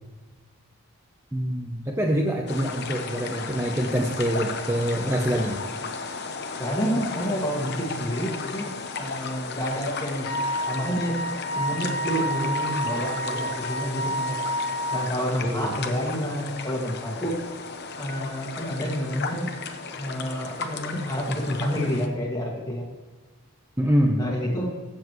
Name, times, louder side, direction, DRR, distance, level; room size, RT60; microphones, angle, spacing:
voice 1, 1.3-5.6 15.4-15.7 23.8-24.2, equal, 10° right, 1 dB, 0.7 m, -25 dB
sound 1, 2.5-22.1, left 4 dB, 50° left, 0.9 m, -35 dB
voice 2, 6.6-10.3 10.7-11.2 11.5-14.3 14.9-17.4 18.0-19.5 20.0-22.8 24.2-24.7, equal, 15° left, -1 dB, 1.9 m, -29 dB
Wind instrument woodwind instrument, 10.2-15.1, right 1 dB, 85° left, 1.9 m, -30 dB
16.0 x 7.4 x 3.1 m, 1.4 s
head